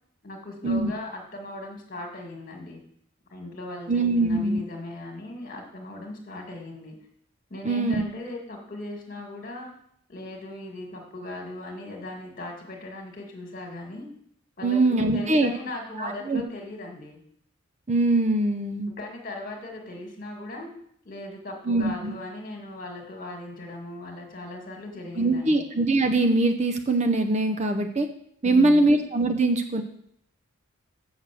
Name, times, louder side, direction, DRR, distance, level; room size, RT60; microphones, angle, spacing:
voice 1, 0.2-2.8 3.3-7.0 7.5-9.8 10.1-14.1 14.6-17.2 19.0-20.7 21.0-25.6 28.4-28.9, left 2 dB, 40° left, 1 dB, 2.1 m, -38 dB
voice 2, 3.9-4.6 7.6-8.0 14.6-15.5 16.0-16.4 17.9-18.9 21.7-22.2 25.2-28.1 28.4-29.8, right 2 dB, 35° right, 7 dB, 0.6 m, -22 dB
6.9 x 6.4 x 7.5 m, 0.69 s
head